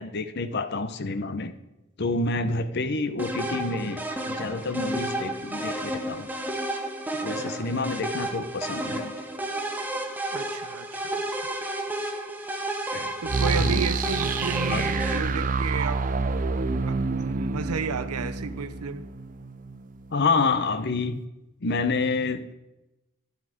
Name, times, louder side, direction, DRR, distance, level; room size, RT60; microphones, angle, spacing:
voice 1, 0.0-1.6 2.0-6.3 7.2-9.1 12.9-13.1 13.6-13.8 14.7-14.8 20.1-21.2 21.6-22.5, left 3 dB, 50° left, 11 dB, 0.7 m, -28 dB
sound 1, 3.2-15.2, right 1 dB, 10° right, 0.8 m, -31 dB
voice 2, 7.4-7.7 10.3-11.1 11.4-11.5 13.2-16.0 16.9-19.0, right 5 dB, 85° right, 13 dB, 0.7 m, -33 dB
sound 2, 13.3-20.1, right 4 dB, 35° right, 0.5 m, -28 dB
12.0 x 7.8 x 5.0 m, 0.98 s
head